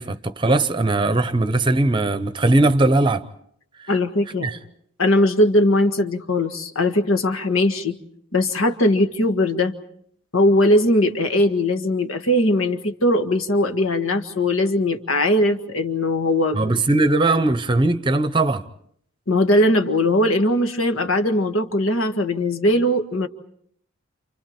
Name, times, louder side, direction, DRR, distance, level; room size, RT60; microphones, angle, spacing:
voice 1, 0.0-3.2 4.4-4.6 16.5-18.6, right 2 dB, 20° right, 0.8 m, -19 dB
voice 2, 3.9-4.5 5.0-8.0 8.3-9.7 10.3-16.6 19.3-23.3, left 1 dB, 70° left, 1.8 m, -20 dB
29.5 x 28.5 x 4.4 m
head